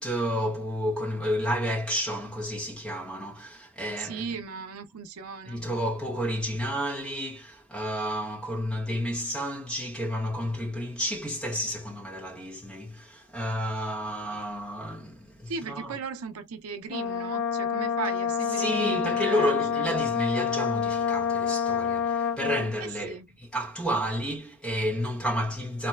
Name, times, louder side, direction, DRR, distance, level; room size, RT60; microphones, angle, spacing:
voice 1, 0.0-4.3 5.5-16.0 18.6-25.9, equal, 5° left, 0.8 m, -31 dB
voice 2, 4.0-5.6 15.5-20.0 22.8-23.3, right 5 dB, 85° right, 0.5 m, -37 dB
Brass instrument, 16.9-22.7, left 7 dB, 50° left, 0.3 m, -28 dB
4.0 x 2.2 x 2.2 m
head